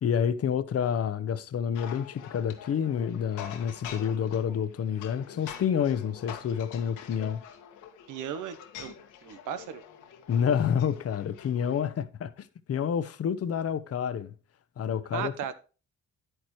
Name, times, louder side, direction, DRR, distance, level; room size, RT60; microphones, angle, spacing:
voice 1, 0.0-7.4 10.3-14.3 14.8-15.3, left 8 dB, 50° left, 0.9 m, -28 dB
sound 1, 1.7-11.8, left 9 dB, 90° left, 1.5 m, -45 dB
voice 2, 8.1-9.0 9.2-9.8 15.1-15.6, right 9 dB, 85° right, 1.1 m, -36 dB
10.0 x 9.1 x 3.1 m
cardioid pair, 90°, 30 cm